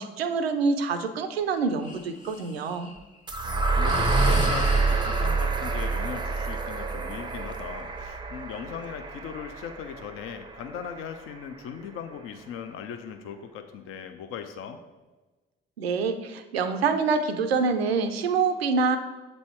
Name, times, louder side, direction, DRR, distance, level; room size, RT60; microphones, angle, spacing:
voice 1, 0.0-2.9 15.8-19.0, right 4 dB, 80° right, 8 dB, 0.5 m, -26 dB
Breathing, 1.8-3.0 3.8-5.4, left 2 dB, 25° left, 1.0 m, -33 dB
sound 1, 3.3-11.2, right 3 dB, 15° right, 0.5 m, -27 dB
voice 2, 3.4-14.8, left 8 dB, 45° left, 7 dB, 0.5 m, -39 dB
7.6 x 4.1 x 4.5 m, 1.2 s
figure-of-eight pair, 45°, 30 cm